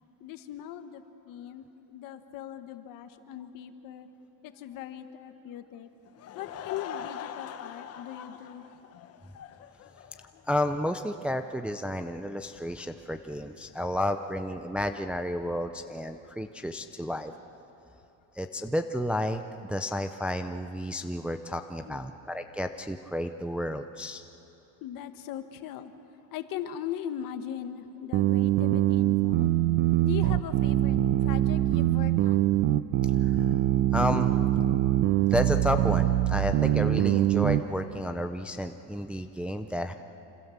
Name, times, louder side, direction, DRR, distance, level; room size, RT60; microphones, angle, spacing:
voice 1, 0.2-4.1 4.4-5.9 6.3-8.6 8.9-9.1 21.8-22.0 24.8-25.9 26.3-29.5 30.0-32.5, left 10 dB, 55° left, 8 dB, 1.7 m, -39 dB
Laughter / Crowd, 6.1-10.6, left 9 dB, 40° left, 1.1 m, -42 dB
voice 2, 10.5-17.3 18.4-24.2 33.2-33.4 33.9-34.4 35.2-39.9, equal, 5° right, 6 dB, 0.5 m, -31 dB
sound 1, 28.1-37.6, right 13 dB, 65° right, 0.9 m, -24 dB
27.5 x 27.0 x 7.3 m, 2.9 s
cardioid pair, 155°, 39 cm